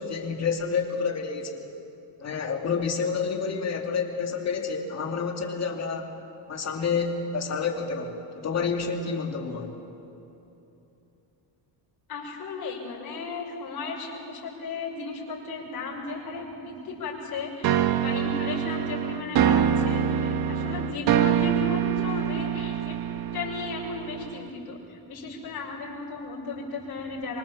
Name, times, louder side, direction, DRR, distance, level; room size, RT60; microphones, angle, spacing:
voice 1, 0.0-1.7 2.2-6.2 6.5-9.8, left 5 dB, 35° left, 2 dB, 2.7 m, -29 dB
voice 2, 12.1-23.0 23.3-27.4, left 4 dB, 55° left, -4 dB, 6.1 m, -35 dB
sound 1, 17.6-24.5, right 9 dB, 55° right, 1.2 m, -25 dB
25.0 x 24.5 x 7.3 m, 3.0 s
cardioid pair, 150°, 46 cm